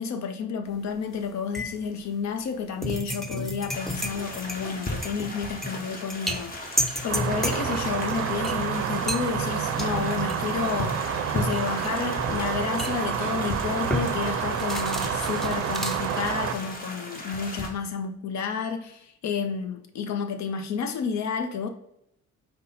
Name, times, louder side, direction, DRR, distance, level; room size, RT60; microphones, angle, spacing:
voice 1, 0.0-21.7, left 6 dB, 65° left, 0.7 m, -31 dB
sound 1, 0.7-1.2 1.5-16.8, equal, ahead, 0.5 m, -33 dB
sound 2, 3.7-17.7, left 1 dB, 30° left, 1.1 m, -37 dB
sound 3, 7.1-16.6, right 8 dB, 50° right, 0.5 m, -29 dB
5.2 x 2.2 x 4.1 m
cardioid pair, 90°, 30 cm